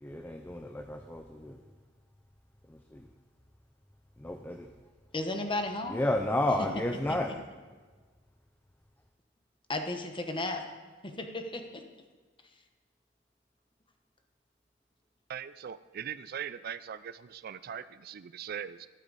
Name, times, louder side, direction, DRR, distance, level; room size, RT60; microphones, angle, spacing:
voice 1, 0.0-1.6 2.7-3.0 4.2-4.7 5.9-7.3, left 1 dB, 10° left, 5 dB, 0.6 m, -31 dB
voice 2, 5.1-6.1 9.7-10.6 11.0-11.8, left 2 dB, 25° left, 5 dB, 1.2 m, -34 dB
voice 3, 15.3-18.9, right 8 dB, 55° right, 15 dB, 0.4 m, -40 dB
13.5 x 12.0 x 4.1 m, 1.4 s
head